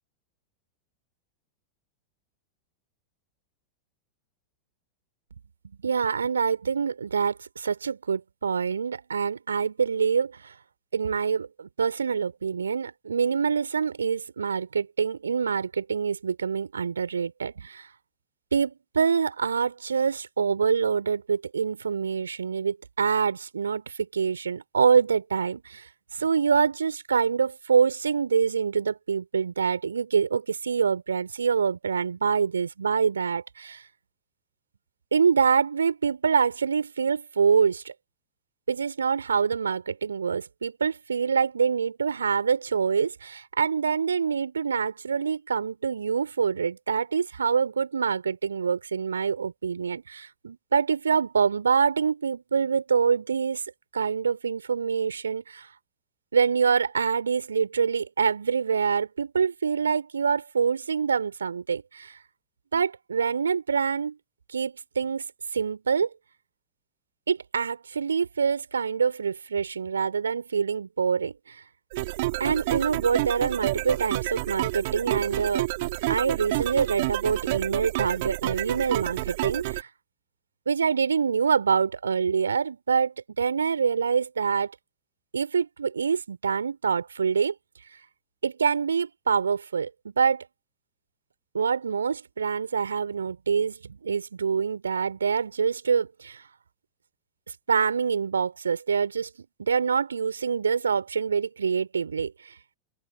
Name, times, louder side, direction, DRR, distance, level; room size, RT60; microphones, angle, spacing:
voice 1, 5.8-10.5 10.9-17.9 18.5-33.8 35.1-37.9 38.7-53.6 53.9-55.7 56.3-62.2 62.7-64.2 64.5-65.2 65.5-66.1 67.3-71.6 72.4-75.6 76.1-79.9 80.7-84.7 85.3-87.5 88.4-90.5 91.5-96.4 97.7-99.3 99.6-102.5, right 6 dB, 70° right, 4.0 m, -25 dB
sound 1, 71.9-79.8, right 21 dB, 50° right, 4.6 m, -29 dB
open air
figure-of-eight pair, 90°, 0 cm